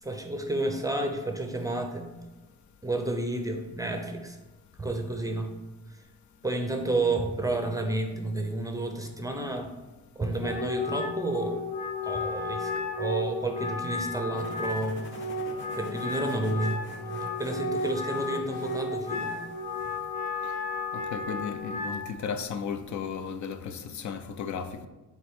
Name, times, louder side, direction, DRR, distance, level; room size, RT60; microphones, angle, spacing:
voice 1, 0.0-2.2 2.8-4.4 4.8-5.6 5.9-6.1 6.4-9.7 10.2-11.6 12.0-15.3 15.8-16.9 17.2-19.4, right 2 dB, 10° right, 4 dB, 0.5 m, -31 dB
Wind instrument woodwind instrument, 10.4-22.1, left 3 dB, 85° left, 1.3 m, -33 dB
sound 1, 14.3-20.1, left 2 dB, 35° left, 1.0 m, -46 dB
voice 2, 20.9-24.9, left 6 dB, 60° left, 9 dB, 0.5 m, -35 dB
8.8 x 4.0 x 3.6 m, 1.1 s
cardioid pair, 165°, 34 cm